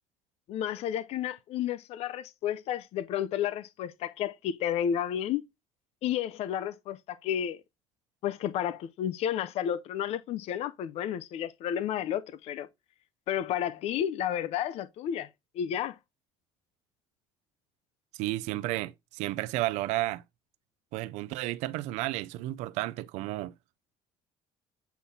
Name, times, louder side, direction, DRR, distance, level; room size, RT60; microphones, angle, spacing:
voice 1, 0.5-5.4 6.0-7.6 8.2-12.7 13.3-15.3 15.5-16.0, left 10 dB, 65° left, 0.6 m, -31 dB
voice 2, 18.2-20.2 20.9-23.5, right 17 dB, 85° right, 0.4 m, -32 dB
8.3 x 5.7 x 2.8 m
cardioid pair, 115°, 11 cm